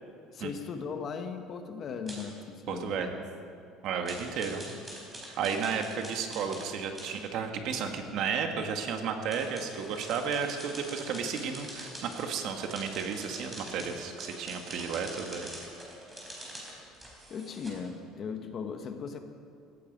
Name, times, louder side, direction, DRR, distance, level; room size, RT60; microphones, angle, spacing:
voice 1, 0.3-3.3 16.5-16.8 17.3-19.2, left 5 dB, 35° left, 6 dB, 1.3 m, -38 dB
sound 1, 2.1-2.3 4.1-6.7 7.0-7.2 9.3-17.7, right 1 dB, 10° right, 4.3 m, -45 dB
voice 2, 2.7-3.2 3.8-4.6 5.4-15.5, right 6 dB, 55° right, 5 dB, 1.7 m, -33 dB
17.5 x 15.0 x 5.3 m, 2.5 s
cardioid pair, 150°, 0 cm